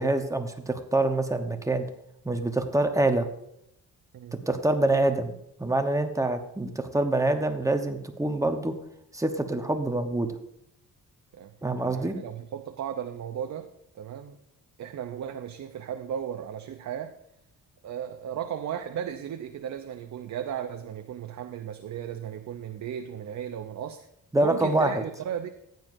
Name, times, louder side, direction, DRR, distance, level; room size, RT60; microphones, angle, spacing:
voice 1, 0.0-1.8 2.2-3.3 4.5-5.3 5.6-8.7 9.1-10.3 11.6-12.2 24.3-24.9, right 2 dB, 10° right, 6 dB, 0.9 m, -25 dB
voice 2, 11.9-13.7 13.9-14.4 14.8-17.1 17.8-24.1 24.4-25.5, right 9 dB, 55° right, 7 dB, 0.7 m, -35 dB
14.5 x 9.3 x 2.6 m, 0.76 s
cardioid pair, 120°, 34 cm